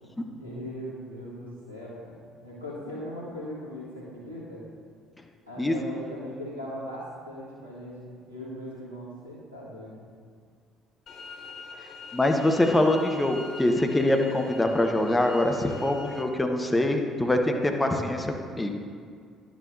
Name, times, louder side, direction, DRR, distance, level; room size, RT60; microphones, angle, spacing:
voice 1, 0.0-4.7 5.5-10.0, equal, 90° right, -7 dB, 1.6 m, -39 dB
sound 1, 11.1-16.2, left 3 dB, 45° left, 0.8 m, -44 dB
voice 2, 12.1-18.7, left 1 dB, 15° left, 3 dB, 0.9 m, -24 dB
11.0 x 7.9 x 2.7 m, 2.1 s
figure-of-eight pair, 50°, 0 cm